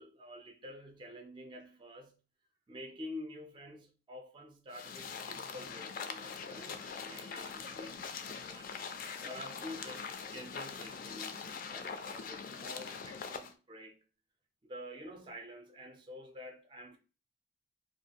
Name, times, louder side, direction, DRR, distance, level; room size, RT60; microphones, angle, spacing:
voice 1, 0.0-2.2 2.7-8.7 9.2-14.0 14.6-17.0, left 1 dB, 25° right, 0.4 m, -48 dB
sound 1, 4.7-13.5, left 5 dB, 50° left, 0.3 m, -43 dB
2.5 x 2.2 x 2.7 m
head